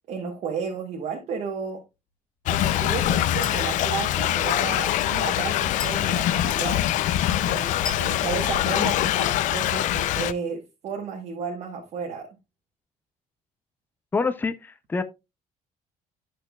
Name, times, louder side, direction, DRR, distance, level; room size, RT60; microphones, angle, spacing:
voice 1, 0.1-1.8 2.5-6.9 7.5-7.7 8.0-12.3, right 6 dB, 50° right, 1.2 m, -33 dB
Thunder / Rain, 2.5-10.3, left 12 dB, 65° left, 0.5 m, -24 dB
Chink clink, 3.4-3.8 5.8-6.1 7.9-8.2, left 4 dB, 35° left, 1.5 m, -35 dB
voice 2, 14.1-15.0, left 4 dB, 15° left, 0.5 m, -26 dB
10.0 x 6.4 x 2.3 m
cardioid pair, 160°, 14 cm